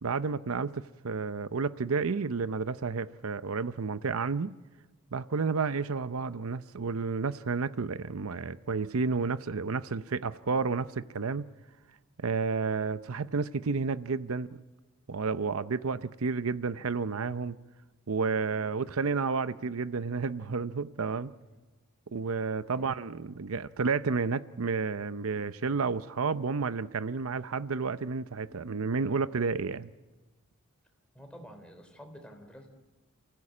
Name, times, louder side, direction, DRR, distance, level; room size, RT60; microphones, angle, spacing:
voice 1, 0.0-4.5 5.1-11.5 12.2-14.6 15.1-17.6 18.1-21.3 22.1-29.9, right 4 dB, 75° right, 0.7 m, -31 dB
voice 2, 31.1-32.7, equal, 5° left, 3.8 m, -49 dB
29.0 x 15.5 x 8.6 m
head